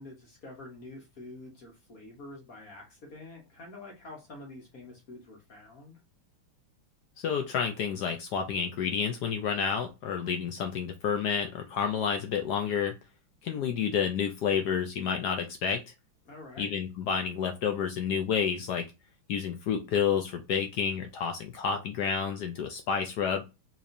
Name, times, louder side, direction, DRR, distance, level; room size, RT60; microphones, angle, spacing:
voice 1, 0.0-6.0 16.2-16.7, left 2 dB, 50° left, 0 dB, 1.2 m, -47 dB
voice 2, 7.2-12.9 13.4-15.8 16.6-18.8 19.3-23.4, left 7 dB, 75° left, 5 dB, 0.9 m, -30 dB
4.1 x 3.0 x 2.6 m, 0.26 s
omnidirectional pair, 2.3 m